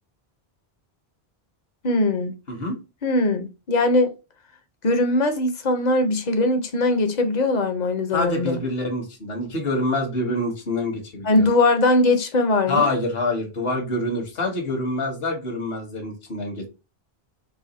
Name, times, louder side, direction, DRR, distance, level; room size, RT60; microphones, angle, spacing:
voice 1, 1.8-2.3 3.0-4.1 4.8-8.6 11.2-12.9, left 2 dB, 50° left, 0.8 m, -20 dB
voice 2, 2.5-2.8 8.1-11.4 12.7-16.7, left 2 dB, 70° left, 1.4 m, -26 dB
4.0 x 2.2 x 4.1 m
omnidirectional pair, 1.0 m